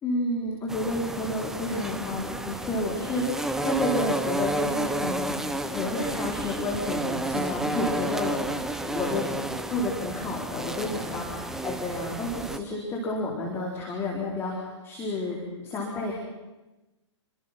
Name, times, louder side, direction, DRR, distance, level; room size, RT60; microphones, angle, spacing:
voice 1, 0.0-5.4 5.7-8.4 8.8-9.2 9.7-11.2 11.6-16.1, left 2 dB, 15° left, -2 dB, 4.2 m, -30 dB
Single bumblebee, 0.7-12.6, right 1 dB, 5° right, 1.0 m, -31 dB
28.5 x 24.5 x 5.8 m, 1.1 s
figure-of-eight pair, 120°, 15 cm